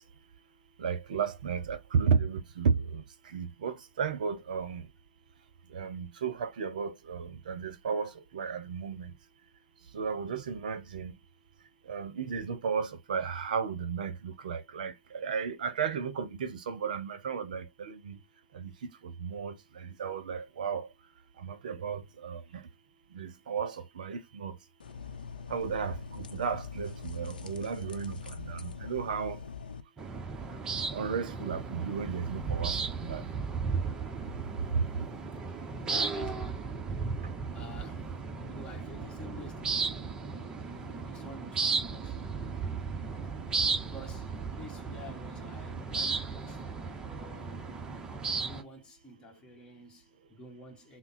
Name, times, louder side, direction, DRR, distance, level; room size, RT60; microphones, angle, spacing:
voice 1, 0.8-3.0 3.3-4.8 5.7-9.0 9.9-11.1 11.9-18.2 18.6-18.7 19.2-19.5 20.0-20.9 21.4-22.4 23.2-24.5 25.5-28.2 28.5-29.4 30.9-32.7 33.0-33.2 34.7-34.8, right 6 dB, 65° right, 0.7 m, -33 dB
sound 1, 24.8-29.8, left 6 dB, 75° left, 0.6 m, -43 dB
sound 2, 30.0-48.6, right 4 dB, 15° right, 0.7 m, -35 dB
voice 2, 35.9-37.2 37.5-38.1 38.5-42.6 43.1-43.4 43.7-47.9 48.4-51.0, left 1 dB, 20° left, 1.2 m, -50 dB
3.5 x 2.0 x 4.1 m
hypercardioid pair, 120°, 5 cm